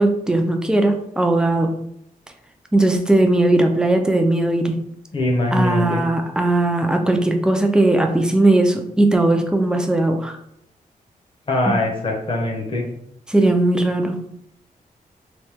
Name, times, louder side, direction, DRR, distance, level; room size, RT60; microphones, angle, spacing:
voice 1, 0.0-1.7 2.7-4.8 5.5-10.4 11.7-11.8 13.3-14.2, right 2 dB, 5° right, 4 dB, 0.3 m, -18 dB
voice 2, 5.1-6.0 11.5-12.8, left 2 dB, 35° left, 0 dB, 0.7 m, -22 dB
3.0 x 2.7 x 3.4 m, 0.75 s
wide cardioid pair, 145°, 15 cm